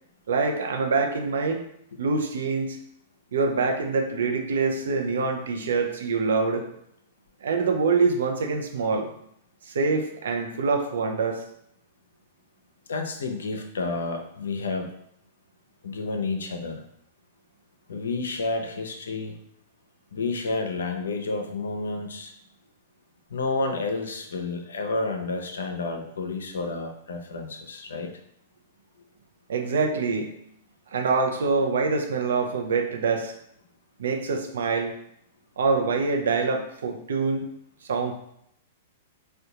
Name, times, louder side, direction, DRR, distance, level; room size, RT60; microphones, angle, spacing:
voice 1, 0.3-1.6 2.0-2.8 3.3-6.6 7.4-9.1 9.7-11.4 29.5-30.3 30.9-33.3 34.0-34.9 35.6-37.5 37.9-38.1, right 4 dB, 75° right, 4 dB, 0.5 m, -25 dB
voice 2, 12.9-14.9 15.8-16.8 17.9-19.3 20.1-22.3 23.3-28.1, left 3 dB, 80° left, 4 dB, 0.5 m, -30 dB
3.5 x 2.2 x 2.8 m, 0.75 s
hypercardioid pair, 110°, 0 cm